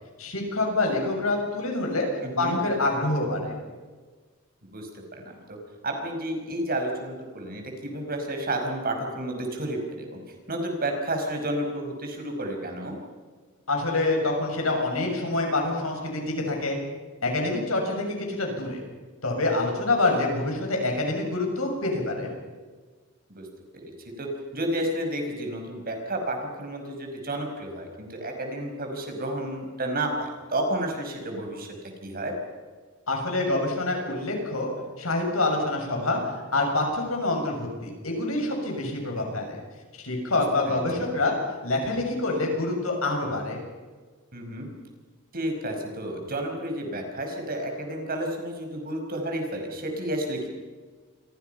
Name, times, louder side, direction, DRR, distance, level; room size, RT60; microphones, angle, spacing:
voice 1, 0.2-2.1 2.4-3.5 13.7-16.8 17.2-18.8 19.2-22.3 33.1-34.7 35.0-39.6 40.0-41.3 41.6-43.6, left 2 dB, 90° left, 2 dB, 7.2 m, -26 dB
voice 2, 2.2-2.6 4.6-5.6 5.8-10.2 10.5-13.0 23.3-23.5 23.7-31.7 32.0-32.3 40.3-41.1 44.3-44.7 45.3-50.5, right 1 dB, 45° right, 3 dB, 5.7 m, -31 dB
29.0 x 23.5 x 5.8 m, 1.4 s
head